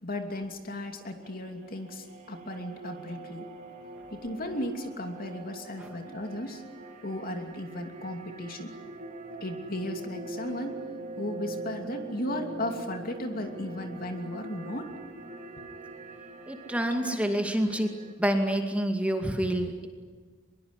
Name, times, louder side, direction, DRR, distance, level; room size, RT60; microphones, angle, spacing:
voice 1, 0.0-3.5 4.1-6.6 7.0-8.8 9.4-10.8 11.2-14.9 17.0-17.2, left 1 dB, 50° left, 4 dB, 2.8 m, -35 dB
sound 1, 1.2-18.1, right 2 dB, 40° right, 2.6 m, -43 dB
voice 2, 16.5-17.9 18.2-19.9, right 1 dB, 5° right, 4 dB, 2.3 m, -27 dB
23.5 x 22.0 x 9.9 m, 1.5 s
head